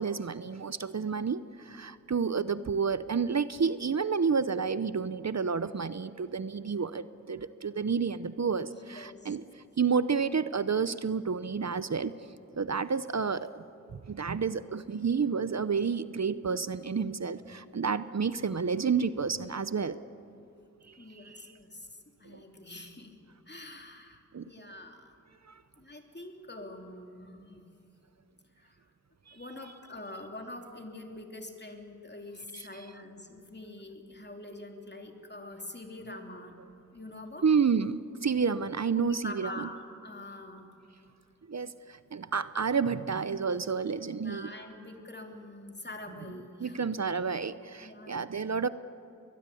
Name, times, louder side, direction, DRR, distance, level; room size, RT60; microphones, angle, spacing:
voice 1, 0.0-9.4 9.8-12.1 12.6-13.6 13.9-20.0 20.9-21.5 22.2-22.4 24.3-24.4 25.5-25.6 29.3-29.4 32.5-32.6 37.4-39.7 41.5-44.5 46.6-48.7, right 5 dB, 55° right, 14 dB, 0.7 m, -30 dB
voice 2, 8.6-9.4 21.0-23.1 23.5-25.1 25.8-27.7 28.6-28.8 29.3-36.6 36.9-37.5 38.9-40.7 44.2-46.8 47.8-48.3, left 2 dB, 35° left, 3 dB, 3.0 m, -45 dB
21.5 x 21.0 x 8.5 m, 2.8 s
wide cardioid pair, 50°, 32 cm